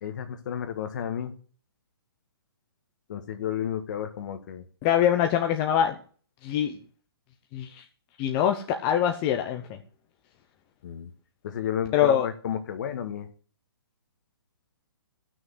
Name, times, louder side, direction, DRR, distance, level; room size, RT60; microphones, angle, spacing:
voice 1, 0.0-1.3 3.1-4.6 10.8-11.1 11.4-13.3, left 9 dB, 50° left, 8 dB, 1.6 m, -32 dB
voice 2, 4.8-6.0 6.4-6.8 7.5-7.8 8.2-9.8 11.9-12.3, left 9 dB, 20° left, 5 dB, 0.8 m, -24 dB
12.5 x 6.3 x 7.9 m, 0.43 s
hypercardioid pair, 160°, 13 cm